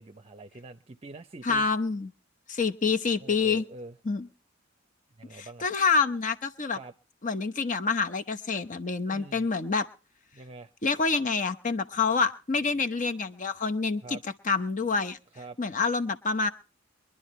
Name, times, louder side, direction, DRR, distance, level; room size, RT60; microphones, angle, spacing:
voice 1, 0.0-1.7 3.2-3.9 5.2-5.7 6.7-6.9 9.1-9.4 10.3-10.7 14.0-14.2 15.3-15.6, right 2 dB, 30° right, 0.7 m, -44 dB
voice 2, 1.4-2.1 2.5-3.6 4.0-4.3 5.3-6.8 7.2-9.9 10.8-15.2 15.6-16.5, left 4 dB, 40° left, 0.9 m, -27 dB
23.5 x 11.5 x 3.1 m
head